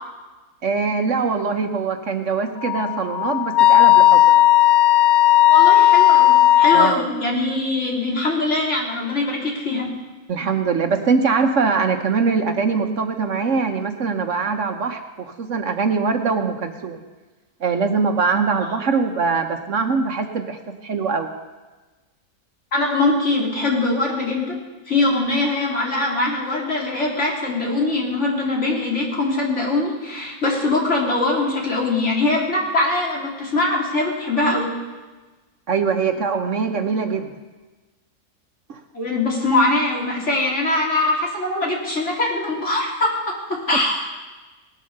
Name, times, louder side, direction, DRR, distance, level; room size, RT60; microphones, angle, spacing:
voice 1, 0.6-4.3 6.7-7.0 10.3-17.0 17.6-21.3 35.7-37.3 38.7-38.8, right 5 dB, 60° right, 6 dB, 1.3 m, -22 dB
Wind instrument woodwind instrument, 2.6-6.9, left 14 dB, 70° left, 0.4 m, -14 dB
voice 2, 5.5-9.9 22.7-24.6 24.9-34.7 38.9-44.1, left 2 dB, 50° left, -2 dB, 3.7 m, -22 dB
18.5 x 10.5 x 6.6 m, 1.2 s
omnidirectional pair, 1.5 m